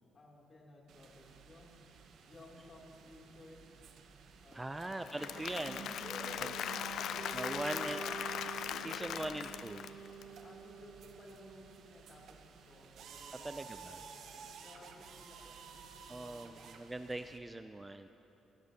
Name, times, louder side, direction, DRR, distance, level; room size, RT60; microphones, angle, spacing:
voice 1, 0.1-1.7 2.2-3.8 4.1-4.8 6.0-7.7 8.0-8.2 8.7-9.6 10.4-16.6, left 2 dB, 40° left, -2 dB, 2.7 m, -56 dB
sound 1, 0.9-17.4, right 6 dB, 75° right, 0.8 m, -55 dB
voice 2, 4.5-5.9 7.3-8.0 8.8-9.8 13.4-14.0 16.1-18.1, right 2 dB, 15° right, 9 dB, 0.3 m, -41 dB
Applause / Crowd, 4.9-10.2, left 9 dB, 75° left, 0.3 m, -40 dB
sound 2, 5.2-12.0, right 5 dB, 55° right, 1.5 m, -48 dB
23.5 x 11.5 x 2.8 m, 3.0 s
cardioid pair, 90°, 0 cm